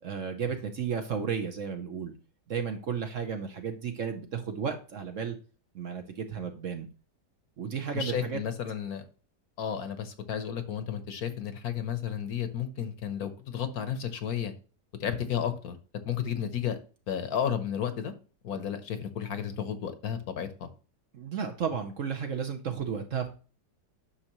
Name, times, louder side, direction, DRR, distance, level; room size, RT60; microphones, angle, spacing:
voice 1, 0.0-2.1 2.5-5.4 5.7-6.9 7.6-8.4 21.1-23.4, right 6 dB, 55° right, 6 dB, 1.0 m, -33 dB
voice 2, 7.9-9.0 9.6-14.5 15.0-15.8 16.0-16.8 17.1-18.1 18.4-20.7, left 8 dB, 60° left, 10 dB, 1.3 m, -32 dB
9.9 x 6.4 x 3.0 m, 0.36 s
omnidirectional pair, 1.9 m